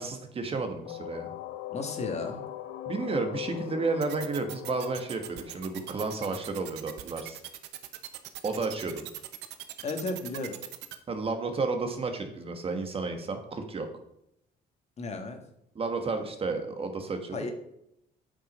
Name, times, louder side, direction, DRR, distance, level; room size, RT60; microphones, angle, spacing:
voice 1, 0.0-1.3 2.9-7.4 8.4-9.0 11.1-13.9 15.7-17.4, right 3 dB, 35° right, 6 dB, 1.3 m, -32 dB
sound 1, 0.9-6.6, left 13 dB, 90° left, 0.8 m, -40 dB
voice 2, 1.7-2.4 9.8-10.6 15.0-15.4 17.3-17.5, left 3 dB, 40° left, 5 dB, 1.6 m, -34 dB
sound 2, 4.0-11.0, right 15 dB, 85° right, 0.8 m, -41 dB
8.6 x 5.9 x 5.3 m, 0.79 s
cardioid pair, 110°, 17 cm